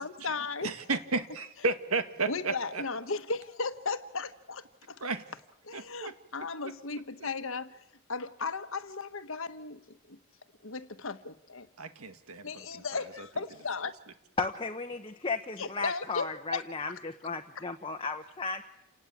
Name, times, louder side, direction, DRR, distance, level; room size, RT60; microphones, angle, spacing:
voice 1, 0.0-0.7 2.2-5.0 5.6-7.8 8.1-9.8 10.1-10.2 10.6-11.7 12.4-13.9 15.6-16.6, left 4 dB, 65° left, 1.4 m, -36 dB
voice 2, 0.6-2.8 5.0-5.2 5.7-6.1 6.6-6.7 11.8-12.6, right 3 dB, 80° right, 1.7 m, -32 dB
voice 3, 14.4-18.6, left 3 dB, 25° left, 1.1 m, -34 dB
29.0 x 18.5 x 8.6 m
head